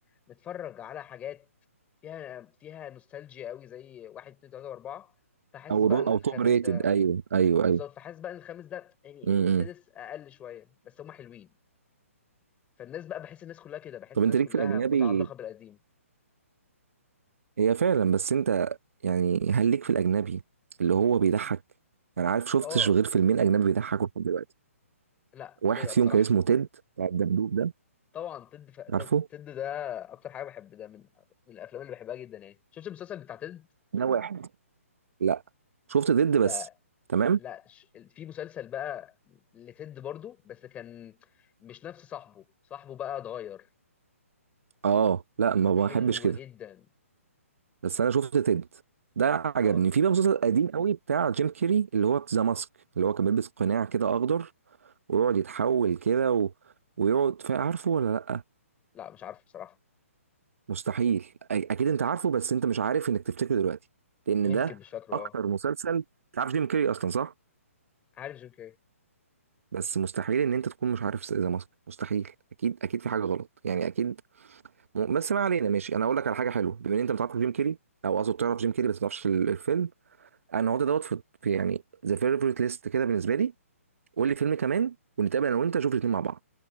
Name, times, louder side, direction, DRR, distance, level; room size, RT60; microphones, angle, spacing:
voice 1, 0.3-1.5 2.0-5.1 5.5-6.9 7.7-11.5 12.8-15.8 22.6-23.0 25.3-26.3 28.1-33.7 36.4-36.7 37.4-41.3 41.6-43.7 45.7-46.9 49.6-49.8 58.9-59.8 64.4-65.4 68.2-68.8, left 10 dB, 15° left, 6.3 m, -41 dB
voice 2, 5.7-7.8 9.3-9.7 14.2-15.3 17.6-18.8 19.0-20.4 20.8-21.6 22.2-24.4 25.6-26.7 27.0-27.7 28.9-29.2 33.9-34.5 35.2-35.4 35.9-36.6 37.1-37.4 44.8-46.4 47.8-48.7 49.2-52.7 53.0-54.5 55.1-56.5 57.0-58.4 60.7-63.8 64.3-64.7 65.1-66.0 66.3-67.3 69.7-72.3 72.6-74.2 74.9-77.8 78.0-79.9 80.5-83.5 84.2-86.4, right 7 dB, 65° right, 1.2 m, -26 dB
figure-of-eight pair, 135°, 8 cm